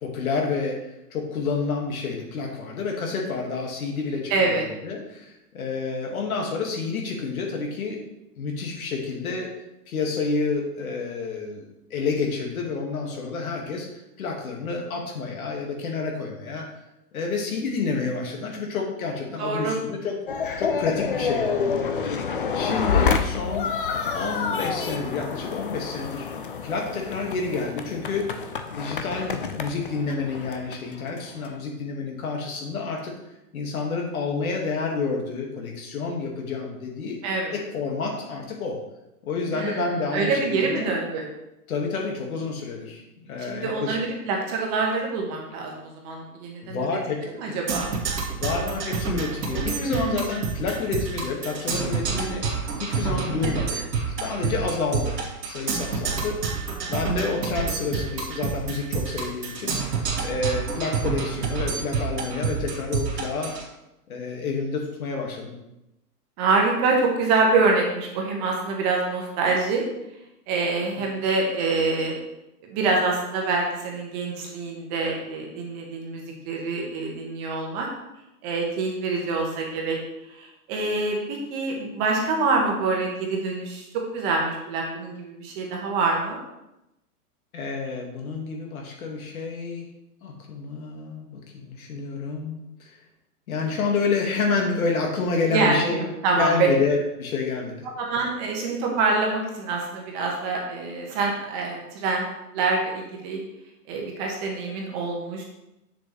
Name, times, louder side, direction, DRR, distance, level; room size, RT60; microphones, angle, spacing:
voice 1, 0.0-8.0 8.4-9.5 9.9-16.7 17.1-20.2 20.6-22.1 22.5-23.7 24.1-26.3 26.6-28.4 28.7-33.1 33.5-37.2 37.5-38.8 39.2-40.9 41.7-44.0 46.6-47.2 48.4-52.5 52.8-53.8 54.2-55.2 55.5-56.5 56.8-59.8 60.2-63.6 64.1-65.6 71.0-71.1 87.5-89.9 90.2-93.0 93.5-96.0 96.4-97.9, left 4 dB, 60° left, 0 dB, 2.0 m, -29 dB
voice 2, 4.3-4.6 19.3-19.8 37.2-37.5 39.5-39.8 40.1-41.3 43.5-46.9 47.2-47.9 49.5-50.2 53.2-53.8 54.4-54.5 66.4-69.8 70.5-72.1 72.7-77.9 78.4-80.0 80.3-86.4 95.5-96.5 98.0-102.3 102.5-103.4 103.9-105.4, right 3 dB, 25° right, 0 dB, 1.4 m, -26 dB
sound 1, 20.3-31.6, left 5 dB, 35° left, 0.4 m, -28 dB
Percussion, 47.7-63.7, right 5 dB, 85° right, 2.4 m, -28 dB
7.7 x 6.7 x 3.2 m, 0.90 s
hypercardioid pair, 155°, 48 cm